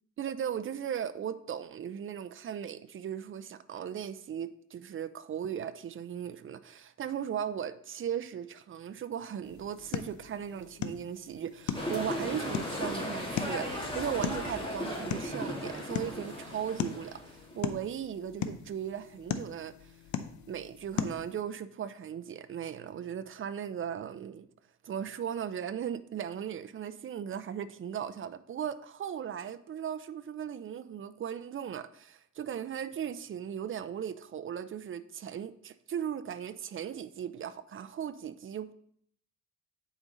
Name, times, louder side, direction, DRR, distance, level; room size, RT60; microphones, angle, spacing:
voice 1, 0.2-19.9 20.5-24.5 24.8-38.7, right 9 dB, 45° right, 0.6 m, -37 dB
sound 1, 9.4-21.4, left 8 dB, 70° left, 0.7 m, -39 dB
sound 2, 11.7-17.7, equal, 15° left, 2.0 m, -36 dB
8.7 x 5.1 x 3.9 m
cardioid pair, 90°, 30 cm